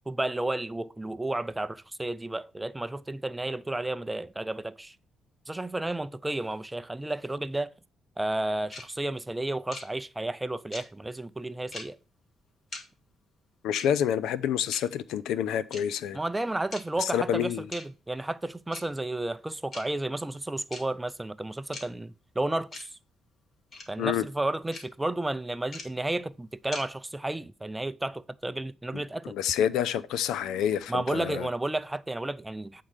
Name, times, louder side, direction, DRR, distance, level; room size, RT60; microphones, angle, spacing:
voice 1, 0.1-5.0 5.5-7.7 8.2-12.0 16.1-22.9 23.9-29.3 30.9-32.8, right 2 dB, 10° right, 0.4 m, -32 dB
sound 1, 8.7-8.8 9.7-9.8 10.7-10.8 11.7-11.8 12.7-12.8 13.7-13.8 14.7-14.8 15.7-15.8 16.7-16.8 17.7-17.8 18.7-18.8 19.7-19.8 20.7-20.8 21.7-21.8 22.7-22.8 23.7-23.8 24.7-24.8 25.7-25.8 26.7-26.8, left 3 dB, 50° left, 2.2 m, -39 dB
voice 2, 13.6-16.2 17.0-17.7 24.0-24.3 28.9-31.5, left 9 dB, 85° left, 0.5 m, -28 dB
8.4 x 3.8 x 6.4 m
cardioid pair, 90°, 0 cm